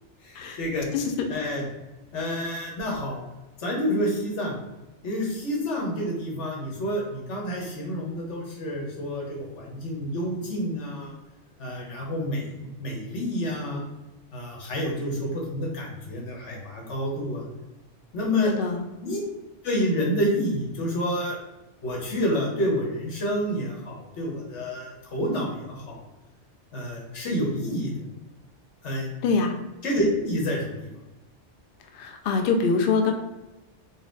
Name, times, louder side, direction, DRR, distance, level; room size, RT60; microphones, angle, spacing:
voice 1, 0.2-0.9 1.3-1.7 2.1-3.2 3.6-4.5 5.0-11.1 11.6-13.8 14.3-17.4 18.1-18.5 19.0-19.2 19.6-21.4 21.8-26.0 26.7-27.9 28.8-29.1 29.8-30.9, equal, 80° left, -1 dB, 1.4 m, -28 dB
voice 2, 0.9-1.3 18.4-18.8 29.2-29.5 32.0-33.1, left 4 dB, 60° left, 3 dB, 0.6 m, -24 dB
4.1 x 2.4 x 3.8 m, 1.0 s
omnidirectional pair, 1.2 m